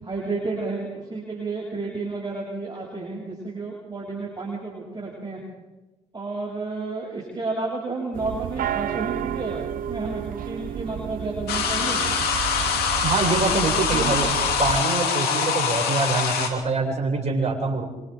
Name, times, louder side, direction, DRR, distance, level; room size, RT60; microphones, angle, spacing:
voice 1, 0.0-5.4 6.1-9.6 9.9-12.0 13.5-14.3, right 3 dB, 25° right, -4 dB, 7.9 m, -31 dB
sound 1, 8.1-14.8, right 10 dB, 60° right, 0.8 m, -31 dB
Can Open and Pour, 11.5-16.5, left 6 dB, 75° left, 3.4 m, -24 dB
voice 2, 13.0-14.3 14.6-17.9, right 3 dB, 45° right, 0 dB, 7.5 m, -24 dB
26.5 x 26.0 x 4.0 m, 1.1 s
hypercardioid pair, 55°, 16 cm